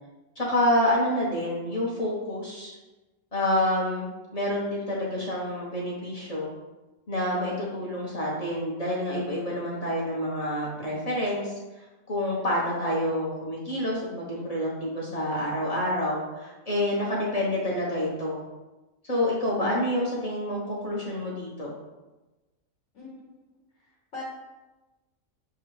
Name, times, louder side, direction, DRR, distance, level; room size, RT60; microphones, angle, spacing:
voice 1, 0.4-2.7 3.3-4.1 4.3-6.5 7.1-11.5 12.1-18.4 19.1-21.7, left 1 dB, 35° left, -5 dB, 0.8 m, -28 dB
voice 2, 22.9-23.4 23.8-24.2, left 4 dB, 60° left, -5 dB, 1.2 m, -42 dB
6.7 x 2.3 x 3.1 m, 1.1 s
omnidirectional pair, 1.4 m